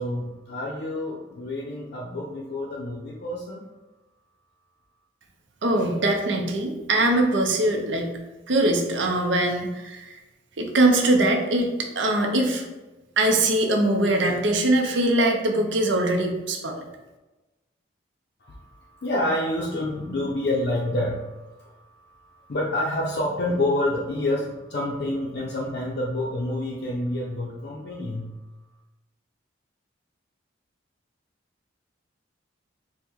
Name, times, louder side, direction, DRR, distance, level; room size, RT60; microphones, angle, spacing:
voice 1, 0.0-3.6 18.4-18.5 19.0-21.3 22.5-28.4, left 1 dB, 55° left, -3 dB, 0.5 m, -28 dB
voice 2, 5.6-8.1 8.5-10.2 10.6-12.7 13.2-16.8, right 1 dB, 75° right, 3 dB, 0.6 m, -22 dB
4.4 x 2.1 x 3.5 m, 1.1 s
head